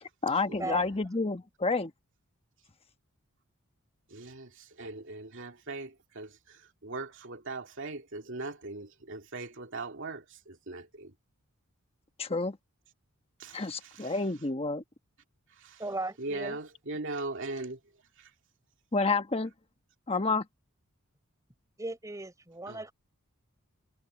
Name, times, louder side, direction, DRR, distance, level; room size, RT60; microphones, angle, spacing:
voice 1, 0.0-1.9 12.2-12.6 13.5-14.8 18.9-19.5 20.1-20.5, left 3 dB, 25° left, 1.2 m, -29 dB
voice 2, 4.1-11.1 13.4-13.7 14.0-14.1 15.6-15.8 16.2-17.8 22.7-22.8, right 3 dB, 60° right, 2.5 m, -40 dB
voice 3, 15.8-16.6 21.8-22.9, right 2 dB, 15° right, 3.9 m, -37 dB
head